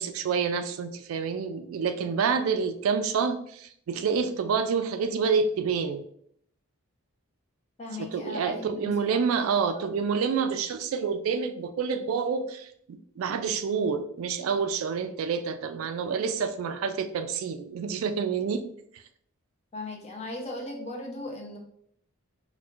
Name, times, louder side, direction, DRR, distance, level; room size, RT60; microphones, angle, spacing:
voice 1, 0.0-6.0 8.0-18.6 18.9-19.0, right 5 dB, 70° right, 9 dB, 0.3 m, -28 dB
voice 2, 7.8-9.2 9.7-9.9 19.7-21.6, left 2 dB, 30° left, 1 dB, 0.6 m, -38 dB
4.3 x 2.2 x 2.4 m, 0.67 s
head